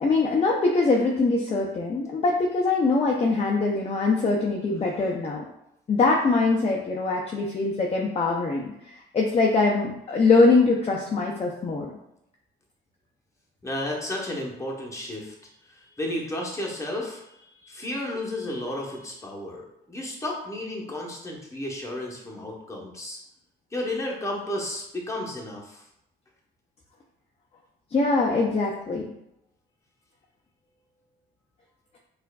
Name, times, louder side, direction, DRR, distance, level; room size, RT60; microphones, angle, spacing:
voice 1, 0.0-5.4 5.9-11.9 27.9-29.0, left 3 dB, 30° left, -2 dB, 0.5 m, -23 dB
voice 2, 13.6-23.2 23.7-25.8, left 1 dB, 15° left, -2 dB, 0.9 m, -33 dB
4.4 x 2.5 x 2.3 m, 0.81 s
cardioid pair, 90°, 20 cm